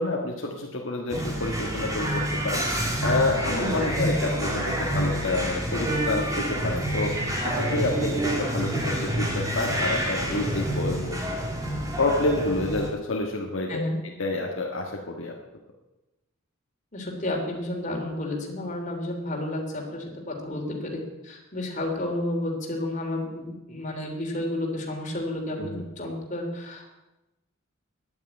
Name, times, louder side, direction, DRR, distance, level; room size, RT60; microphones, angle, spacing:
voice 1, 0.0-2.7 3.0-7.1 7.4-11.3 12.0-13.9 14.2-15.3 25.6-25.8, left 2 dB, 65° left, -1 dB, 1.6 m, -28 dB
sound 1, 1.1-12.9, right 1 dB, 15° right, 2.6 m, -28 dB
voice 2, 3.9-4.2 13.7-14.0 16.9-26.9, left 1 dB, 35° left, 0 dB, 3.2 m, -31 dB
10.5 x 9.3 x 8.8 m, 1.0 s
head